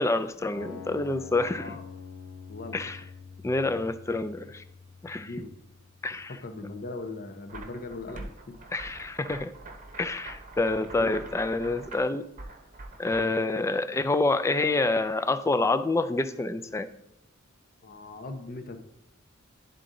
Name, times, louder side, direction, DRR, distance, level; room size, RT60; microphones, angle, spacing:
voice 1, 0.0-1.8 2.7-3.0 3.4-4.6 5.0-5.3 6.0-6.4 8.7-9.5 10.0-12.2 13.0-16.9, left 2 dB, 15° left, 10 dB, 0.3 m, -27 dB
sound 1, 0.5-6.6, left 6 dB, 85° left, 0.8 m, -45 dB
voice 2, 1.5-1.8 2.5-2.8 5.2-5.5 6.1-8.6 10.9-11.2 17.8-18.8, left 2 dB, 45° left, 7 dB, 0.8 m, -39 dB
sound 2, 7.5-13.2, right 2 dB, 40° right, 0.9 m, -44 dB
11.0 x 3.8 x 3.7 m, 0.83 s
head